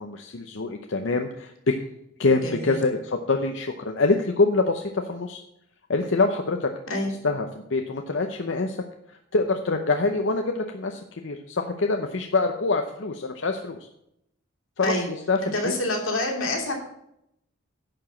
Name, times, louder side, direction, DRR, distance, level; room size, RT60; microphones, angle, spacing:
voice 1, 0.0-1.8 2.2-5.4 5.9-6.7 7.2-8.8 9.3-13.8 14.8-15.7, left 3 dB, 60° left, 4 dB, 0.7 m, -25 dB
voice 2, 2.4-2.8 6.9-7.1 14.8-15.1 15.4-16.7, left 1 dB, 90° left, 0 dB, 3.0 m, -27 dB
11.0 x 4.9 x 7.5 m, 0.79 s
head